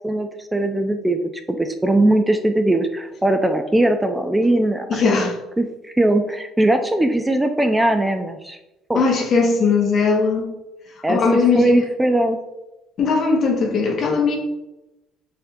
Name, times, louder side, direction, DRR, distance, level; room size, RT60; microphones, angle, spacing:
voice 1, 0.0-8.6 8.9-9.0 11.0-11.2 11.5-12.4, right 1 dB, 10° right, 7 dB, 0.3 m, -20 dB
voice 2, 4.9-5.4 8.9-10.5 11.1-11.8 13.0-14.4, left 4 dB, 50° left, 2 dB, 0.8 m, -19 dB
4.2 x 2.7 x 2.6 m, 0.95 s
supercardioid pair, 85°, 0 cm